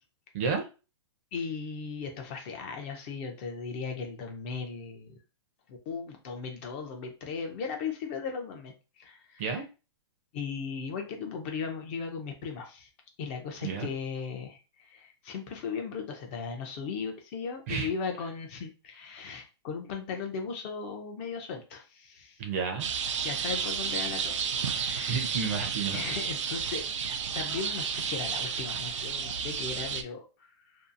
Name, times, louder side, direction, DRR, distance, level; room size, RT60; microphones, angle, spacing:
voice 1, 0.3-0.7 9.4-9.6 13.6-13.9 17.7-17.9 22.4-22.9 25.1-26.0, right 5 dB, 30° right, 6 dB, 0.5 m, -31 dB
voice 2, 1.3-5.1 5.7-8.7 9.0-9.6 10.3-12.9 13.2-22.4 23.2-25.3 25.9-26.9 27.3-30.3, left 5 dB, 25° left, 4 dB, 0.4 m, -37 dB
sound 1, 22.8-30.0, right 6 dB, 85° right, 0.5 m, -32 dB
2.6 x 2.3 x 2.5 m, 0.32 s
hypercardioid pair, 165°, 15 cm